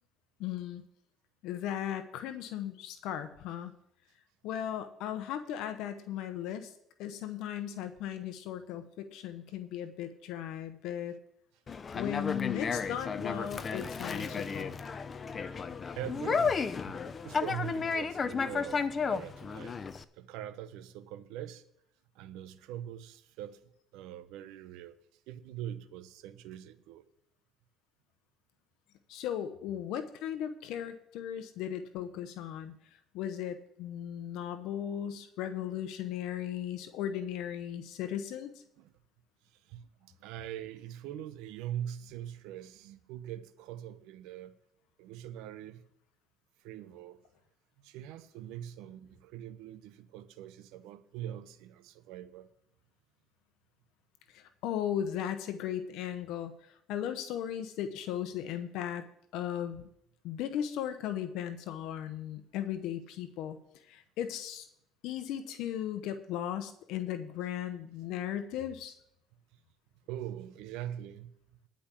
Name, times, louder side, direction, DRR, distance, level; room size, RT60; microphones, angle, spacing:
voice 1, 0.4-0.8 1.4-3.7 4.4-6.7 7.0-11.1 11.9-14.8 29.1-32.8 33.1-38.5 54.3-56.5 56.9-59.0 59.3-59.9 60.2-63.6 63.9-64.7 65.0-68.9, left 10 dB, 80° left, 0.9 m, -37 dB
Conversation, 11.7-20.0, left 5 dB, 35° left, 0.6 m, -33 dB
voice 2, 16.0-16.6 16.9-17.0 17.2-19.8 20.1-21.6 22.1-23.6 23.9-25.0 25.3-27.0 38.8-38.9 39.5-44.6 45.0-45.8 46.6-47.2 47.8-52.5 70.1-71.3, right 11 dB, 85° right, 0.8 m, -43 dB
10.5 x 5.2 x 8.3 m
cardioid pair, 100°, 0 cm